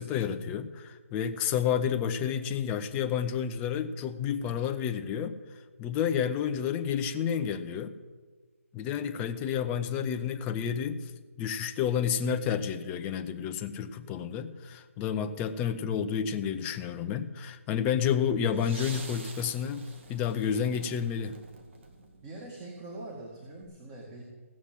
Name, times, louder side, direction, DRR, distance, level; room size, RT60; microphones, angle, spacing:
voice 1, 0.0-5.4 5.8-7.9 8.7-11.1 11.4-21.4, left 8 dB, 20° left, 8 dB, 0.7 m, -30 dB
sound 1, 18.5-22.5 23.6-23.7, right 3 dB, 50° right, 2.2 m, -47 dB
voice 2, 22.2-24.2, right 2 dB, 25° right, -1 dB, 1.9 m, -43 dB
16.5 x 7.3 x 7.6 m, 1.4 s
figure-of-eight pair, 150°, 8 cm